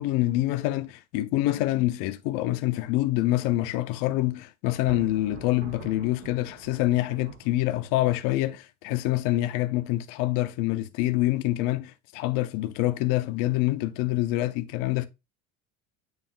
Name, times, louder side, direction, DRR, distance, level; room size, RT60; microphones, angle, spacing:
voice 1, 0.0-15.1, left 16 dB, 65° left, 0.8 m, -26 dB
Thunder, 4.7-8.0, right 6 dB, 85° right, 3.6 m, -45 dB
9.1 x 3.1 x 3.8 m
cardioid pair, 180°, 34 cm